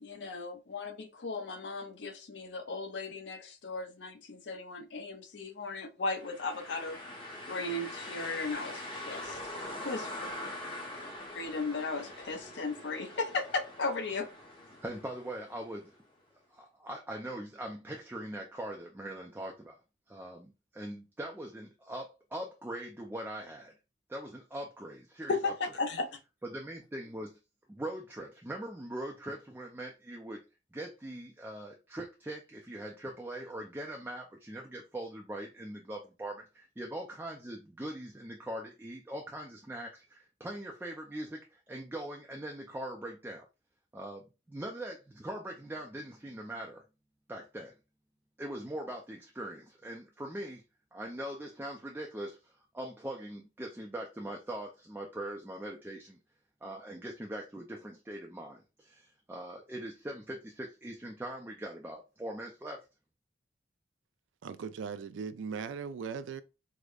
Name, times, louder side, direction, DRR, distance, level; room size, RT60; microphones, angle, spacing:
voice 1, 0.0-7.0 7.4-9.4 9.8-10.3 11.3-14.3 25.3-26.2, left 3 dB, 70° left, 0.6 m, -36 dB
sound 1, 6.1-15.9, left 1 dB, 25° left, 0.8 m, -43 dB
voice 2, 14.8-16.0 16.5-19.8 20.1-23.7 24.1-25.5 26.4-27.4 27.7-30.4 30.7-43.5 43.9-46.8 47.3-47.7 48.4-50.6 50.9-56.2 56.6-62.9, right 1 dB, 10° right, 0.3 m, -41 dB
voice 3, 64.4-66.4, right 6 dB, 90° right, 0.3 m, -38 dB
4.8 x 2.1 x 2.3 m
head